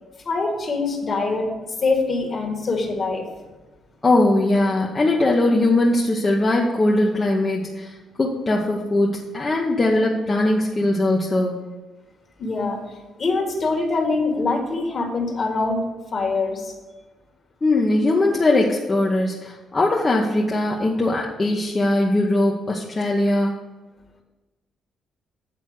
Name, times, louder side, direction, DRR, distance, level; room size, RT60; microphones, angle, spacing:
voice 1, 0.3-1.5 1.8-3.3 12.4-12.8 13.2-15.8 16.1-16.7, left 3 dB, 45° left, 1 dB, 1.8 m, -23 dB
voice 2, 4.0-11.6 17.6-23.6, left 2 dB, 30° left, -2 dB, 0.9 m, -20 dB
8.5 x 4.0 x 6.5 m, 1.2 s
cardioid pair, 90°, 0 cm